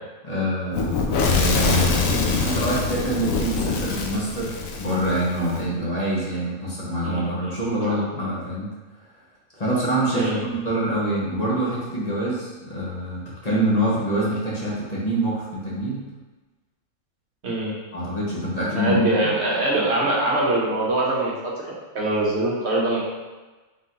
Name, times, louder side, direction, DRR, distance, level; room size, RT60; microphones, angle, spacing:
voice 1, 0.2-2.0 2.3-8.7 9.6-16.0 17.9-19.1, right 1 dB, 30° left, -7 dB, 1.1 m, -25 dB
Fire / Explosion, 0.7-5.6, left 4 dB, 80° left, 1.0 m, -24 dB
voice 2, 7.0-7.5 7.9-8.0 10.1-10.4 17.4-17.7 18.7-23.0, right 2 dB, 55° right, -4 dB, 1.1 m, -23 dB
3.9 x 3.7 x 2.9 m, 1.2 s
omnidirectional pair, 1.4 m